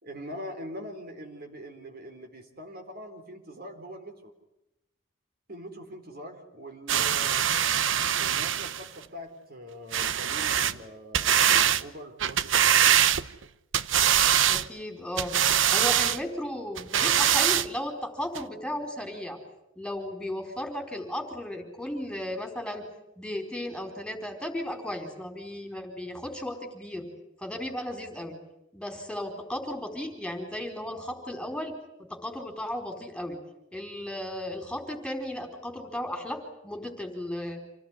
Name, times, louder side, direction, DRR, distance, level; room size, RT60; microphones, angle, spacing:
voice 1, 0.0-4.3 5.5-7.5 8.2-12.9, equal, 50° right, 4 dB, 4.2 m, -43 dB
sound 1, 6.9-8.9 9.9-10.8 11.1-11.8 12.2-13.4 13.7-14.7 15.2-16.2 16.8-17.7 18.4-18.5, right 9 dB, 70° right, 0.9 m, -23 dB
voice 2, 14.5-15.4 15.7-19.4 19.8-22.9 23.2-27.1 27.4-28.4 28.7-33.4 33.7-37.6, left 1 dB, 5° left, 4 dB, 4.4 m, -35 dB
27.5 x 18.0 x 9.9 m, 0.86 s
head